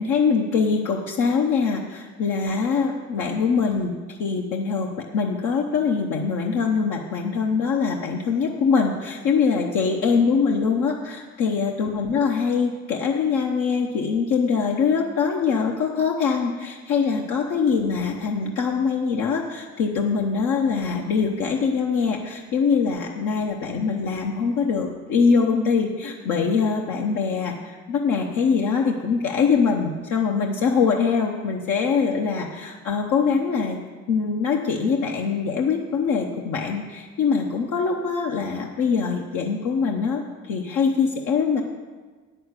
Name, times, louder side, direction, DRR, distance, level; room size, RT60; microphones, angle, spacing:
voice 1, 0.0-3.9 4.2-33.8 34.1-41.6, left 5 dB, 85° left, 0 dB, 0.9 m, -23 dB
8.7 x 6.5 x 8.1 m, 1.4 s
cardioid pair, 90°, 30 cm